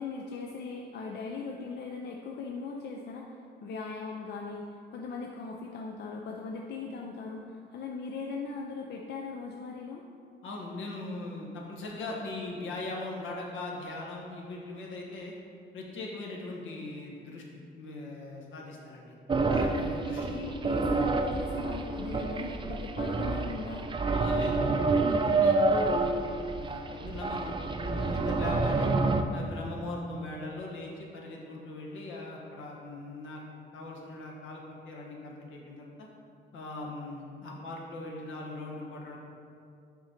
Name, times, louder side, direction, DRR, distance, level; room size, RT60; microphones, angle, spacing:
voice 1, 0.0-10.0 20.0-23.8 24.3-24.7, left 4 dB, 60° left, 0 dB, 0.6 m, -39 dB
voice 2, 10.4-15.3 15.7-17.4 17.8-19.1 19.5-20.3 24.1-24.7 25.1-28.9 29.3-33.4 33.7-36.1 36.5-39.2, left 2 dB, 75° left, -1 dB, 1.2 m, -40 dB
sound 1, 19.3-29.2, right 3 dB, 25° right, 0.4 m, -28 dB
5.9 x 5.0 x 4.4 m, 2.4 s
cardioid pair, 90°, 20 cm